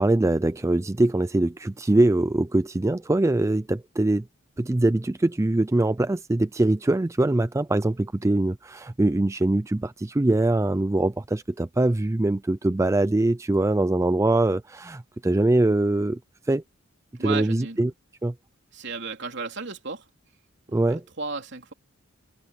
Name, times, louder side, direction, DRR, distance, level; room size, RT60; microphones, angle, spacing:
voice 1, 0.0-4.2 4.6-16.2 16.5-16.6 17.2-17.9 18.2-18.3 20.7-21.0, right 2 dB, 15° right, 0.4 m, -23 dB
voice 2, 17.2-17.8 18.7-20.1 20.7-21.7, right 4 dB, 55° right, 3.5 m, -34 dB
head